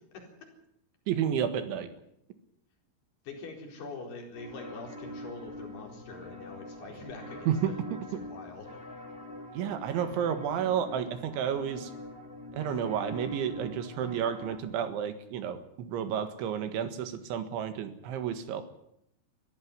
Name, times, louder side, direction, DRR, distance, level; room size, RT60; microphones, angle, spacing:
voice 1, 1.1-1.9 7.5-8.0 9.5-11.9 12.5-18.6, right 8 dB, 80° right, 10 dB, 4.0 m, -31 dB
voice 2, 3.2-7.7 8.1-8.7, left 3 dB, 60° left, 2 dB, 6.2 m, -44 dB
sound 1, 4.3-14.6, left 1 dB, 25° left, 1.3 m, -44 dB
21.5 x 15.0 x 9.8 m, 0.75 s
omnidirectional pair, 5.4 m